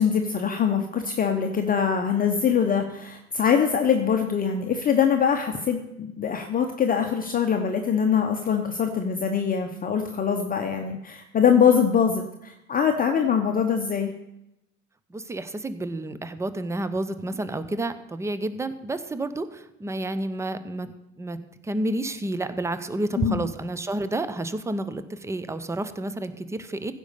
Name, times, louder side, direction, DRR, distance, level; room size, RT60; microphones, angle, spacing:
voice 1, 0.0-14.1 23.2-23.4, left 7 dB, 20° left, 5 dB, 0.9 m, -23 dB
voice 2, 15.1-21.4 21.6-26.9, right 2 dB, 5° right, 12 dB, 0.6 m, -30 dB
15.5 x 5.3 x 6.8 m, 0.88 s
figure-of-eight pair, 85°, 42 cm